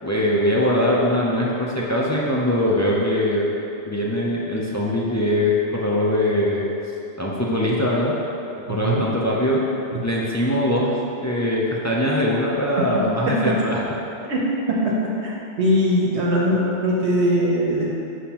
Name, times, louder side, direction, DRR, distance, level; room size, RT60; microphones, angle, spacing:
voice 1, 0.0-3.5 3.8-6.7 7.2-8.1 8.7-9.6 10.0-11.0 11.2-13.8, left 1 dB, 25° left, -5 dB, 0.3 m, -21 dB
voice 2, 8.7-9.0 14.3-15.0 15.2-18.0, equal, 80° right, -4 dB, 1.0 m, -21 dB
7.1 x 4.8 x 2.9 m, 2.9 s
omnidirectional pair, 1.1 m